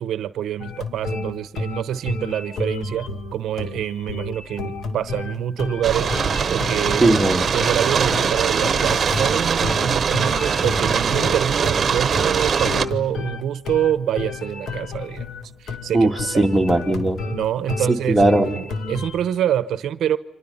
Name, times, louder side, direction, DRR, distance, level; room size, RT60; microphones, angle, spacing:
voice 1, 0.0-6.1 6.5-7.0 7.5-15.3 15.6-16.1 16.3-16.5 17.3-20.2, right 10 dB, 75° right, 0.9 m, -26 dB
sound 1, 0.6-19.2, left 4 dB, 65° left, 2.3 m, -31 dB
sound 2, 5.8-12.9, right 6 dB, 45° right, 1.2 m, -21 dB
voice 2, 7.0-7.5 15.9-17.2 18.1-18.5, right 2 dB, 5° right, 2.4 m, -18 dB
30.0 x 26.0 x 5.6 m
cardioid pair, 90°, 0 cm